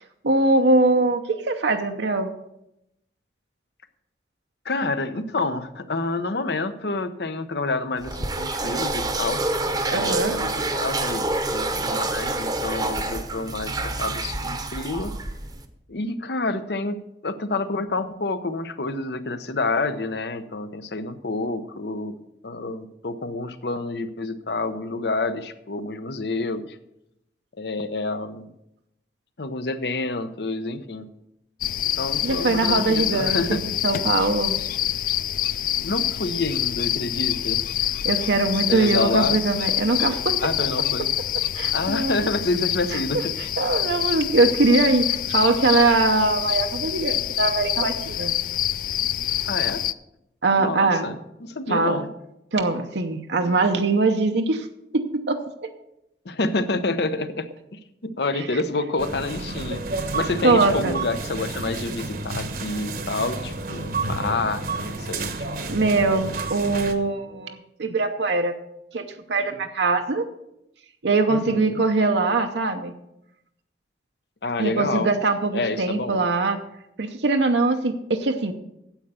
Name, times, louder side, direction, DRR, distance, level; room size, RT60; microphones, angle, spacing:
voice 1, 0.2-2.3 9.9-10.3 32.2-34.6 38.0-40.4 41.5-42.2 42.9-43.0 43.6-48.4 50.4-51.1 51.7-52.1 52.5-54.7 54.9-55.4 60.4-60.9 65.7-68.6 68.9-70.2 71.0-72.9 74.6-76.6 77.0-78.5, right 3 dB, 75° right, 5 dB, 0.8 m, -22 dB
voice 2, 4.6-9.4 9.7-15.2 15.9-22.2 22.4-26.8 27.6-28.5 29.4-31.1 32.0-33.6 35.8-37.7 38.7-39.4 40.4-41.1 41.7-43.4 49.5-49.8 50.6-52.1 56.2-65.3 65.6-65.8 71.3-71.8 74.4-75.1 75.5-76.2, left 3 dB, 65° left, 11 dB, 0.8 m, -28 dB
sound 1, 8.0-15.7, right 2 dB, 20° right, 0.9 m, -27 dB
sound 2, 31.6-49.9, left 12 dB, 50° left, 0.3 m, -26 dB
sound 3, 59.0-67.0, right 3 dB, 50° right, 1.1 m, -31 dB
9.1 x 7.9 x 6.8 m, 0.84 s
head